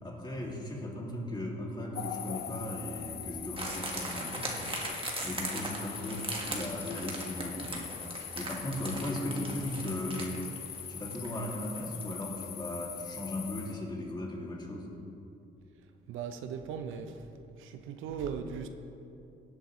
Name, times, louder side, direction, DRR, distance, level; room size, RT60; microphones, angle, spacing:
voice 1, 0.0-4.5 5.2-7.8 8.3-10.5 10.9-14.9, left 1 dB, 20° left, -2 dB, 2.5 m, -37 dB
sound 1, 1.9-13.7, left 9 dB, 55° left, 0.6 m, -42 dB
sound 2, 3.6-12.2 12.4-12.5, right 2 dB, 25° right, 1.7 m, -39 dB
voice 2, 16.1-17.3 17.6-18.7, right 7 dB, 85° right, 7 dB, 0.7 m, -38 dB
17.5 x 8.0 x 3.1 m, 2.7 s
cardioid pair, 90°, 20 cm